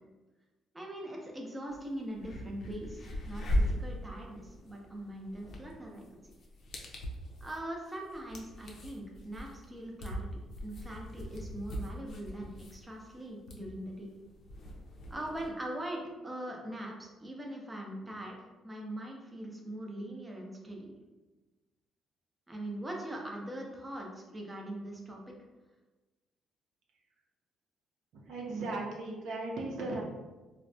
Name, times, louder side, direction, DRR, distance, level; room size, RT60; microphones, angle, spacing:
voice 1, 0.7-6.0 7.4-10.3 10.6-14.1 15.1-20.9 22.5-25.2, right 1 dB, 15° right, -1 dB, 0.6 m, -41 dB
sound 1, 1.7-1.8 2.1-15.5, equal, 65° left, 0.5 m, -39 dB
voice 2, 28.1-30.0, right 2 dB, 75° right, -2 dB, 0.6 m, -37 dB
3.3 x 2.1 x 2.6 m, 1.2 s
cardioid pair, 85°, 0 cm